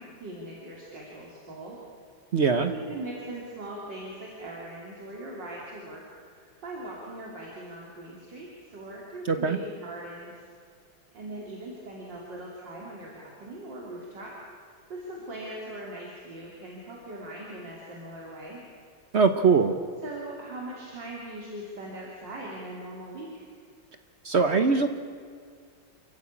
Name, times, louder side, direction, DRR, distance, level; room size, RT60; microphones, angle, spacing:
voice 1, 0.0-1.8 2.6-10.4 11.1-14.3 14.7-18.6 20.0-23.4, right 1 dB, 65° right, -3 dB, 3.8 m, -40 dB
voice 2, 2.3-2.7 9.3-9.6 19.1-19.7 24.2-24.9, right 5 dB, 50° right, 8 dB, 0.9 m, -21 dB
28.0 x 14.5 x 8.5 m, 2.1 s
omnidirectional pair, 2.1 m